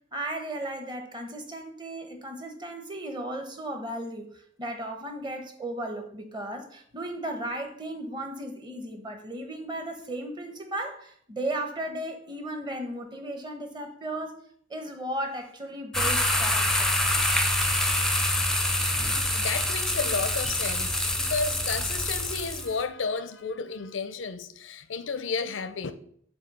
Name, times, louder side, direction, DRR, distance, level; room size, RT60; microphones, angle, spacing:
voice 1, 0.1-14.4 14.7-17.0, right 1 dB, 25° right, 0.8 m, -35 dB
sound 1, 15.9-22.7, left 1 dB, 5° left, 0.5 m, -26 dB
voice 2, 19.1-25.9, left 5 dB, 90° left, 0.5 m, -32 dB
7.3 x 2.7 x 5.3 m
head